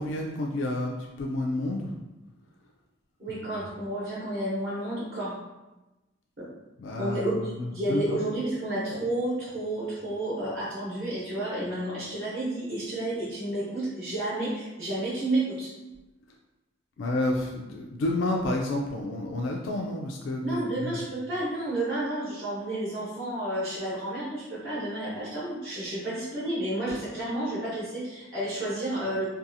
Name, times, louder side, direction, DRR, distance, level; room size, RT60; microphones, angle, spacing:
voice 1, 0.0-1.9 3.4-3.6 6.8-8.1 17.0-20.9, left 1 dB, 75° left, 0 dB, 0.3 m, -30 dB
voice 2, 3.2-5.3 6.4-6.5 7.0-15.7 20.4-29.3, right 1 dB, 55° right, -10 dB, 0.9 m, -31 dB
2.6 x 2.3 x 2.6 m, 1.1 s
head